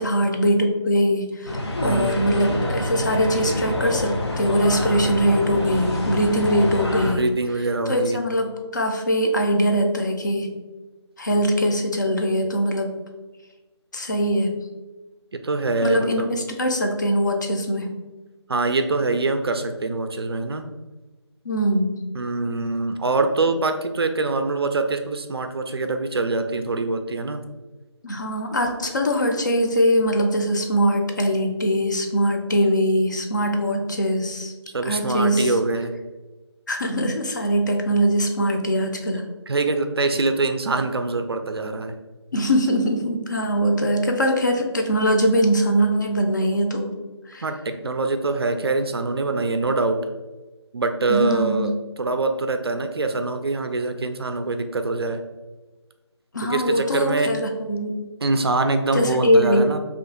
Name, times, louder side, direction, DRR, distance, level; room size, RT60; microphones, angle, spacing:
voice 1, 0.0-7.2 7.9-10.5 11.2-12.9 13.9-14.5 15.8-17.9 21.4-22.0 28.0-34.5 34.8-35.5 36.7-39.2 42.3-46.9 47.3-47.4 51.1-51.7 56.3-58.1 58.9-59.8, equal, 40° left, 3 dB, 0.4 m, -22 dB
sound 1, 1.4-7.1, left 1 dB, 65° left, 0.8 m, -26 dB
voice 2, 1.8-2.1 7.0-8.2 15.3-16.3 18.5-20.6 22.2-27.4 34.7-35.9 39.5-41.9 47.4-47.6 47.8-50.0 50.7-51.7 52.0-55.2 56.5-57.3 58.2-59.8, right 3 dB, 60° right, 7 dB, 0.4 m, -24 dB
2.6 x 2.5 x 3.6 m, 1.2 s
figure-of-eight pair, 160°, 15 cm